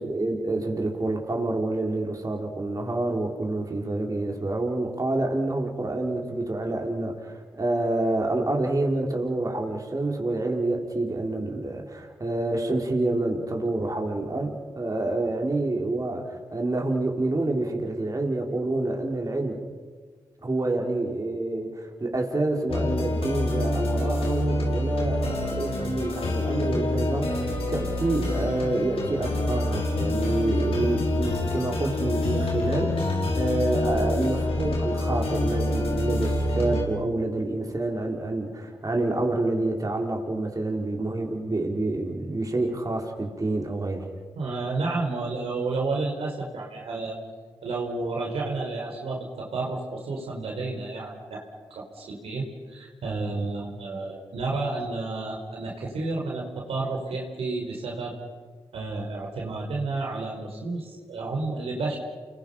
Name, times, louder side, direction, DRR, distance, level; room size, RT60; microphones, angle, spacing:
voice 1, 0.0-19.6 20.4-44.1, right 2 dB, 35° right, 1 dB, 5.0 m, -28 dB
sound 1, 22.7-36.8, left 1 dB, 75° left, 5.5 m, -26 dB
voice 2, 44.3-47.2 47.6-51.4 51.7-58.2 58.7-62.0, right 3 dB, 80° right, -1 dB, 4.9 m, -31 dB
29.5 x 22.5 x 5.9 m, 1.5 s
supercardioid pair, 40°, 10 cm